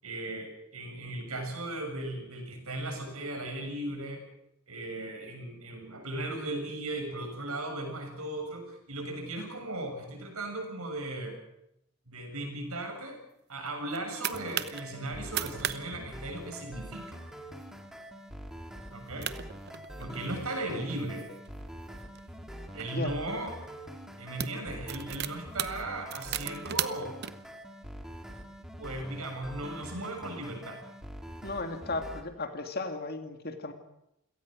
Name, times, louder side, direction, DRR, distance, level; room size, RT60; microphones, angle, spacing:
voice 1, 0.0-4.2 4.7-11.4 12.1-13.2 13.5-17.2 18.9-19.3 20.0-21.3 22.7-23.5 24.2-27.2 28.8-30.8, right 1 dB, 85° right, 3 dB, 7.0 m, -37 dB
sound 1, 13.7-14.8 15.2-15.8 16.0-16.1 16.5-16.8 17.4-17.6 18.1-18.2 18.9-19.0 19.2-20.4 21.0-22.9 23.6-23.8 24.1-27.3, right 10 dB, 50° right, 0.9 m, -36 dB
sound 2, 14.3-32.2, equal, ahead, 2.0 m, -45 dB
voice 2, 31.4-33.7, left 2 dB, 45° left, 6 dB, 2.3 m, -35 dB
28.5 x 18.0 x 6.3 m, 0.83 s
head